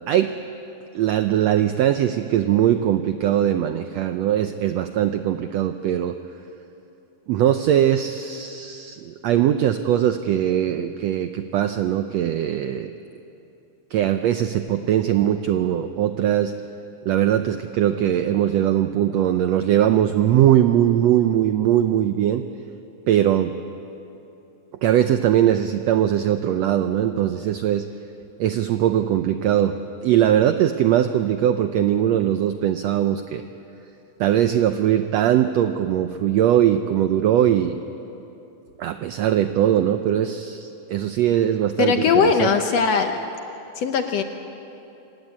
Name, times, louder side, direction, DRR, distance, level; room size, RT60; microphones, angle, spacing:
voice 1, 0.9-6.2 7.3-12.9 13.9-16.5 17.1-22.4 23.1-23.5 24.8-27.8 28.4-29.7 30.0-33.4 34.2-37.8 38.8-42.5, right 11 dB, 85° right, 8 dB, 1.5 m, -20 dB
voice 2, 41.8-43.1 43.8-44.2, left 6 dB, 65° left, 6 dB, 1.7 m, -19 dB
27.0 x 16.5 x 9.7 m, 2.9 s
omnidirectional pair, 3.8 m